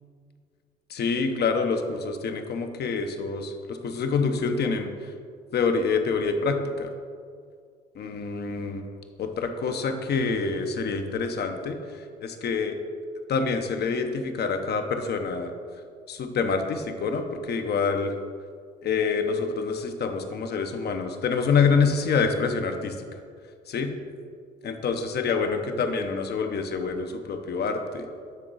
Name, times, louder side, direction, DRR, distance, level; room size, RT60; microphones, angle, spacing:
voice 1, 0.9-4.9 5.5-6.9 7.9-8.9 9.2-11.8 12.2-12.8 13.3-15.5 16.1-18.1 18.8-23.1 23.7-23.9 24.6-28.1, left 5 dB, 50° left, 6 dB, 0.8 m, -26 dB
9.6 x 3.8 x 3.9 m, 2.1 s
hypercardioid pair, 55°, 21 cm